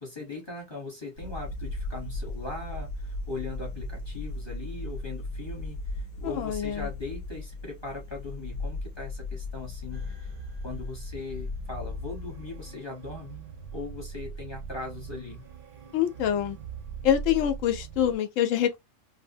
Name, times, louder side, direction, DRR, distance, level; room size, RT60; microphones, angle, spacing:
voice 1, 0.0-10.3 10.6-13.4 13.7-15.4, left 3 dB, 25° left, 0.9 m, -39 dB
sound 1, 1.2-12.8, left 3 dB, 55° left, 0.7 m, -37 dB
voice 2, 6.2-6.9 15.9-16.6 17.0-18.8, left 10 dB, 80° left, 0.9 m, -25 dB
sound 2, 9.9-18.2, right 6 dB, 60° right, 0.6 m, -42 dB
2.6 x 2.1 x 2.7 m
omnidirectional pair, 1.3 m